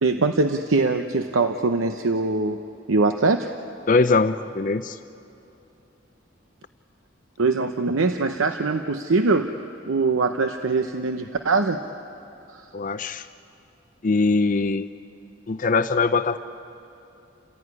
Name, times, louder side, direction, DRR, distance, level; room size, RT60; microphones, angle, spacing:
voice 1, 0.0-2.6 2.9-3.5 7.4-9.5 9.9-11.8 12.5-12.6, right 3 dB, 85° right, 7 dB, 0.8 m, -22 dB
voice 2, 3.9-5.0 12.7-13.2 14.0-14.9 15.5-16.4, left 3 dB, 40° left, 10 dB, 0.5 m, -21 dB
30.0 x 16.0 x 9.7 m, 2.9 s
head